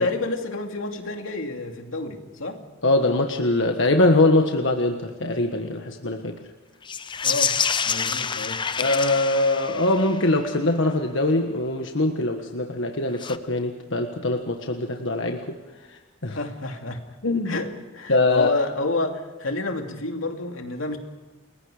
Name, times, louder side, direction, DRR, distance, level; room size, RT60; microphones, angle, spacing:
voice 1, 0.0-2.6 7.2-8.6 16.3-17.1 17.4-21.0, left 2 dB, 90° left, 4 dB, 2.7 m, -29 dB
voice 2, 2.8-6.4 8.8-15.6 16.2-16.4 17.2-17.6 18.1-18.5, left 2 dB, 65° left, 3 dB, 1.5 m, -22 dB
sound 1, 6.8-10.3 13.1-13.4, left 6 dB, 25° left, 0.6 m, -27 dB
30.0 x 21.5 x 5.1 m, 1.2 s
head